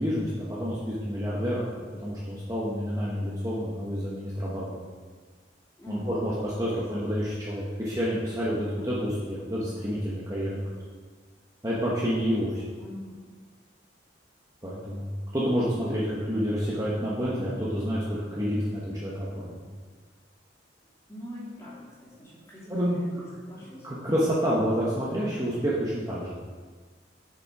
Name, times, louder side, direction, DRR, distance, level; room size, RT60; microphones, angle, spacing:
voice 1, 0.0-4.7 5.9-10.7 11.6-12.6 14.6-19.6 22.7-23.0 23.8-26.4, equal, 20° right, -7 dB, 1.2 m, -29 dB
voice 2, 5.8-6.3 6.7-6.8 12.8-13.2 21.1-23.9, equal, 15° left, -8 dB, 2.9 m, -43 dB
7.3 x 6.9 x 4.8 m, 1.5 s
head